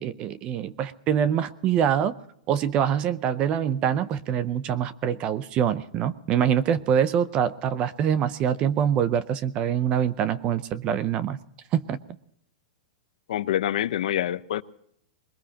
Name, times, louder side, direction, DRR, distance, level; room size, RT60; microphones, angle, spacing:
voice 1, 0.0-2.1 2.5-11.4 11.7-12.0, right 9 dB, 25° right, 0.6 m, -24 dB
voice 2, 13.3-14.6, left 11 dB, 70° left, 0.8 m, -26 dB
21.5 x 20.5 x 2.9 m
supercardioid pair, 160°, 4 cm